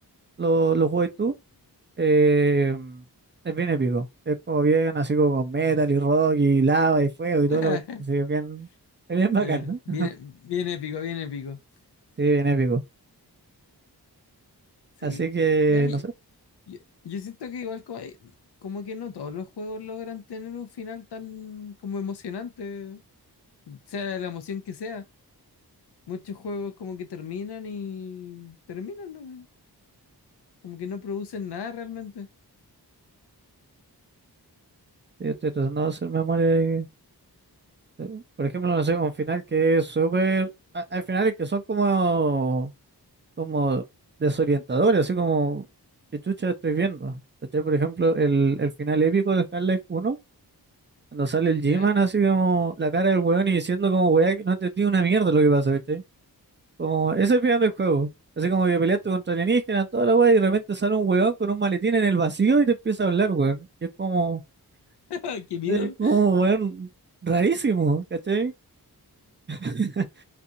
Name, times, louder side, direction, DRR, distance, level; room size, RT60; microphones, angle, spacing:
voice 1, 0.4-1.3 2.0-3.0 3.4-7.8 8.1-8.7 9.1-10.1 12.2-12.8 15.0-16.0 35.2-36.9 38.0-40.5 40.7-42.7 43.4-43.8 44.2-45.7 46.1-47.2 47.5-50.2 51.1-56.0 56.8-58.1 58.4-63.7 64.0-64.4 65.7-66.9 67.2-68.5 69.5-70.1, right 4 dB, 30° right, 0.4 m, -22 dB
voice 2, 7.5-8.0 9.3-11.6 15.0-15.3 15.7-16.0 16.7-18.3 18.6-23.0 23.7-25.1 26.1-29.5 30.6-32.3 51.6-51.9 65.1-66.2, left 6 dB, 80° left, 0.6 m, -34 dB
2.5 x 2.3 x 2.7 m
wide cardioid pair, 95°, 39 cm